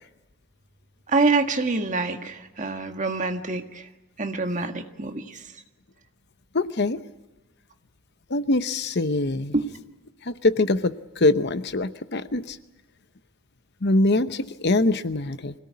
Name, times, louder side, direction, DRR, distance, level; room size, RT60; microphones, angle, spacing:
voice 1, 1.1-3.9 4.2-5.5, right 3 dB, 35° right, 6 dB, 1.7 m, -26 dB
voice 2, 6.5-7.0 8.3-9.5 10.3-12.6 13.8-15.5, left 2 dB, 50° left, 12 dB, 0.9 m, -23 dB
25.5 x 17.5 x 9.6 m, 1.1 s
head